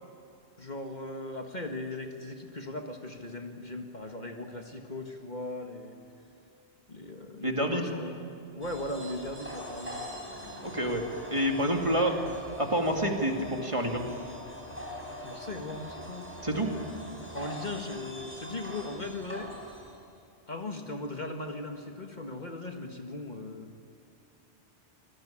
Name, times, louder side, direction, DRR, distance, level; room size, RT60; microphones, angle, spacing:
voice 1, 0.6-6.0 6.9-8.2 8.6-10.1 15.2-16.3 17.3-19.5 20.5-23.8, left 2 dB, 40° left, 4 dB, 1.8 m, -38 dB
voice 2, 7.4-7.8 10.6-11.0 11.3-12.2 12.6-14.0 16.4-16.7, right 1 dB, 30° right, 2 dB, 2.4 m, -28 dB
sound 1, 8.6-19.9, equal, 10° right, 4.9 m, -42 dB
25.0 x 21.0 x 8.8 m, 2.7 s
omnidirectional pair, 1.2 m